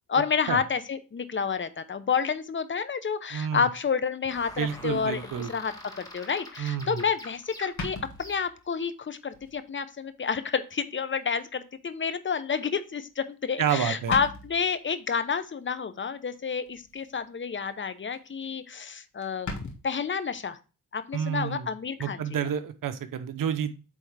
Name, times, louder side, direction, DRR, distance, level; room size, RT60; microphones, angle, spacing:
voice 1, 0.1-20.6 20.9-22.2, left 6 dB, 35° left, 12 dB, 0.8 m, -29 dB
voice 2, 3.3-3.7 4.6-5.5 6.6-7.0 13.6-14.1 21.1-21.7 22.0-23.7, right 8 dB, 70° right, 11 dB, 0.8 m, -29 dB
sound 1, 4.3-8.8, left 1 dB, 10° left, 1.9 m, -46 dB
sound 2, 7.0-7.1 7.8-8.7 9.3-9.6 10.1-10.2 11.4-11.5 13.2-13.5 13.8-13.9 14.1-14.7 16.7-17.1 17.5-17.8 18.1-18.2 18.4-18.5 18.8-18.9 19.2-19.8, left 3 dB, 55° left, 1.7 m, -38 dB
8.4 x 3.6 x 3.3 m, 0.33 s
cardioid pair, 75°, 34 cm